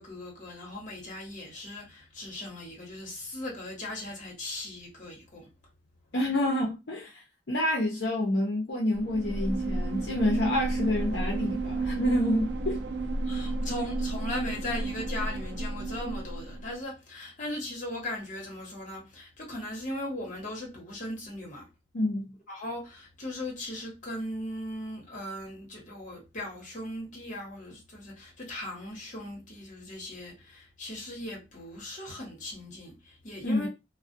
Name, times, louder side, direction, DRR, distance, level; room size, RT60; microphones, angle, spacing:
voice 1, 0.0-5.5 13.3-21.7 22.5-33.7, left 1 dB, 45° left, 1.1 m, -38 dB
voice 2, 6.1-7.2 7.5-12.8 21.9-22.3 33.4-33.7, left 1 dB, 75° left, 0.7 m, -28 dB
sound 1, 8.9-16.8, right 2 dB, 75° right, 0.5 m, -32 dB
2.3 x 2.1 x 2.5 m
head